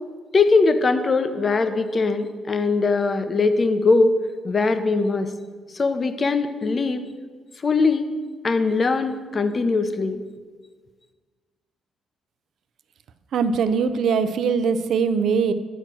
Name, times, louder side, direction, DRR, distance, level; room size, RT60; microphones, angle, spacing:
voice 1, 0.3-4.2 4.4-5.3 5.7-7.0 7.6-8.1 8.4-10.2, left 3 dB, 35° left, 10 dB, 0.8 m, -21 dB
voice 2, 13.3-15.5, right 6 dB, 70° right, 11 dB, 0.6 m, -21 dB
10.0 x 4.4 x 7.7 m, 1.5 s
cardioid pair, 90°, 0 cm